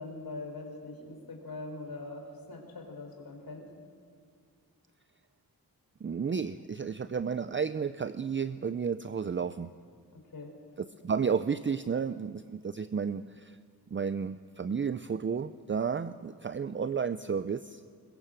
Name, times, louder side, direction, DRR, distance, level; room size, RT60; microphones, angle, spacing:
voice 1, 0.0-3.7 10.1-10.6, left 2 dB, 80° left, 2 dB, 4.3 m, -42 dB
voice 2, 6.0-9.7 10.8-13.6 13.9-17.8, right 6 dB, 35° right, 12 dB, 0.5 m, -32 dB
21.5 x 21.5 x 7.7 m, 2.3 s
wide cardioid pair, 120°, 36 cm